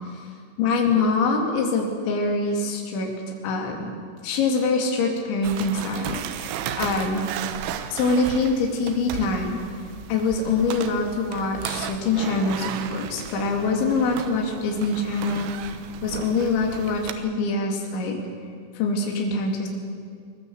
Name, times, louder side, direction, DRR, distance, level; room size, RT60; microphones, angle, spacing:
voice 1, 0.6-3.1 3.4-3.9 4.2-7.2 7.9-9.6 10.1-15.7 16.0-18.2 18.8-19.7, left 3 dB, 70° left, 1 dB, 4.8 m, -24 dB
sound 1, 5.4-17.1, right 9 dB, 80° right, 3.3 m, -35 dB
21.5 x 20.5 x 7.9 m, 2.1 s
omnidirectional pair, 5.6 m